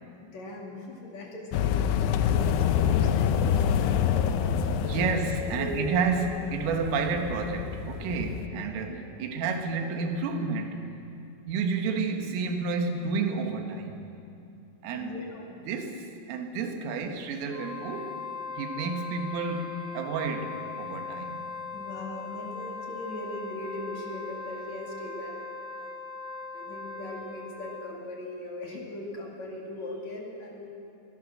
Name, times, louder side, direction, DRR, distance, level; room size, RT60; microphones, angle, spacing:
voice 1, 0.2-5.1 5.5-5.9 8.8-9.4 14.9-15.6 21.7-25.4 26.5-30.7, left 1 dB, 45° left, -1 dB, 2.8 m, -39 dB
sound 1, 1.5-8.5, left 8 dB, 80° left, 2.8 m, -27 dB
voice 2, 4.9-10.8 11.5-14.0 14.8-15.2 15.7-18.2 18.6-21.5, right 4 dB, 80° right, 5 dB, 4.0 m, -30 dB
Wind instrument woodwind instrument, 17.4-28.0, left 5 dB, 60° right, 2.3 m, -39 dB
23.5 x 18.0 x 6.4 m, 2.6 s
omnidirectional pair, 5.9 m